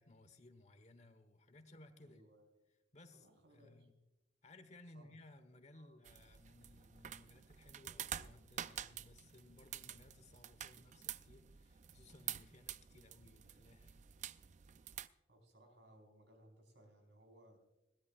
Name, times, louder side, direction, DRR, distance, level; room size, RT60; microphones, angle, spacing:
voice 1, 0.0-2.2 2.9-3.9 4.4-14.1, left 2 dB, 40° left, 10 dB, 1.2 m, -61 dB
voice 2, 2.0-2.5 3.1-3.9 4.9-5.2 5.7-6.0 15.3-17.6, right 1 dB, 70° right, 3 dB, 4.6 m, -64 dB
sound 1, 6.0-15.1, right 10 dB, 40° right, 0.4 m, -49 dB
21.0 x 16.5 x 2.5 m, 0.96 s
head